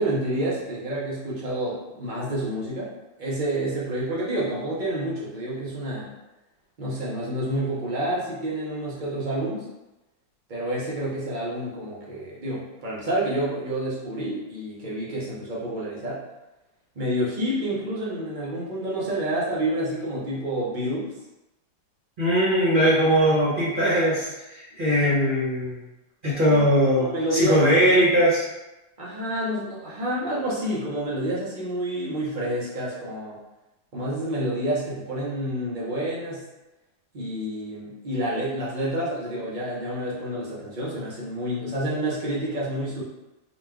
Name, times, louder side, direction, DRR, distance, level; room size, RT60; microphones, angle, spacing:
voice 1, 0.0-2.9 3.2-6.1 6.8-9.7 10.5-16.2 17.0-21.1 23.2-23.4 24.7-25.0 26.5-26.6 27.0-27.6 29.0-33.4 33.9-36.4 37.1-43.0, right 1 dB, 65° right, -6 dB, 0.4 m, -29 dB
voice 2, 22.2-24.3 24.5-25.8 26.2-27.1 27.3-28.5, equal, 35° right, -8 dB, 0.9 m, -20 dB
4.1 x 2.4 x 3.4 m, 1.0 s
omnidirectional pair, 2.1 m